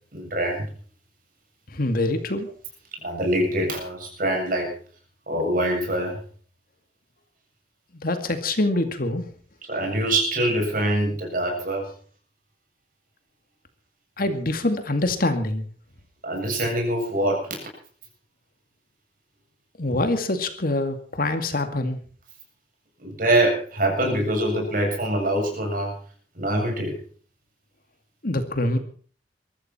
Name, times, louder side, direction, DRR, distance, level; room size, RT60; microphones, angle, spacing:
voice 1, 0.1-0.7 3.0-4.7 5.3-6.2 9.7-11.8 16.2-17.5 23.0-25.9 26.4-27.0, right 1 dB, 50° right, 1 dB, 7.6 m, -24 dB
voice 2, 1.7-2.5 8.0-9.2 14.2-15.6 19.8-22.0 28.2-28.8, left 2 dB, 55° left, 8 dB, 2.3 m, -25 dB
22.0 x 14.0 x 4.4 m, 0.43 s
head